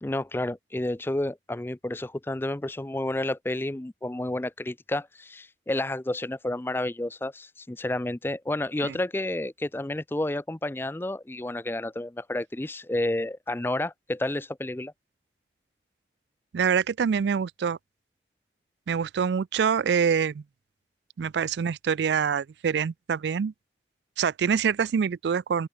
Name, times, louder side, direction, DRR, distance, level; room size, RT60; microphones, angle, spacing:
voice 1, 0.0-14.9, left 1 dB, 10° left, 0.4 m, -30 dB
voice 2, 16.5-17.8 18.9-20.4 21.2-23.5 24.2-25.7, right 7 dB, 80° right, 0.4 m, -25 dB
open air
head